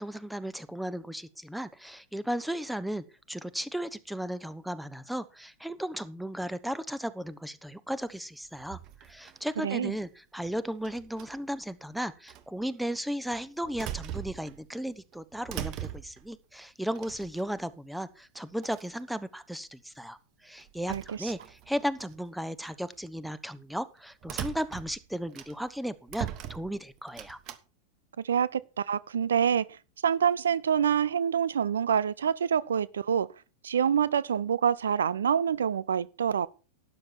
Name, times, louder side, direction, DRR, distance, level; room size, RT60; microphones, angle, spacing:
voice 1, 0.0-20.2 20.4-27.4, equal, ahead, 0.9 m, -35 dB
sound 1, 8.5-9.5 10.8-11.5 12.3-12.4 13.3-14.8 15.1-16.3 16.9-17.7 18.3-18.4 18.6-19.0 20.6-22.1 22.7-22.9 24.2-25.8 26.1-27.6, right 11 dB, 40° right, 1.3 m, -41 dB
voice 2, 9.6-9.9 20.9-21.3 28.2-29.8 30.0-33.3 33.6-36.5, right 8 dB, 75° right, 0.5 m, -26 dB
12.5 x 9.3 x 4.6 m
figure-of-eight pair, 95°, 0 cm